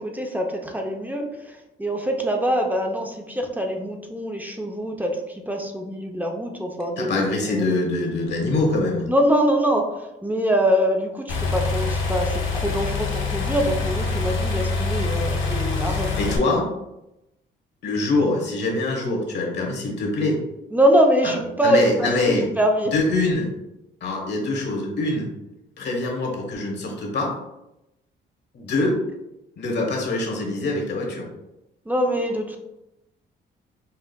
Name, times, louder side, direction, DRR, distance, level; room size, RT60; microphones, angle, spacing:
voice 1, 0.0-7.2 7.5-7.7 9.1-9.9 10.2-16.3 20.7-22.9 31.9-32.6, equal, 10° right, 2 dB, 0.6 m, -23 dB
voice 2, 7.0-9.0 15.9-16.7 17.8-20.4 21.2-21.3 21.6-22.5 22.9-23.5 24.0-25.3 25.8-27.3 28.5-29.0 29.6-31.3, left 2 dB, 60° left, 0 dB, 1.2 m, -24 dB
sound 1, 11.3-16.4, left 4 dB, 75° left, 0.8 m, -25 dB
5.6 x 2.4 x 2.2 m, 0.90 s
cardioid pair, 90°, 20 cm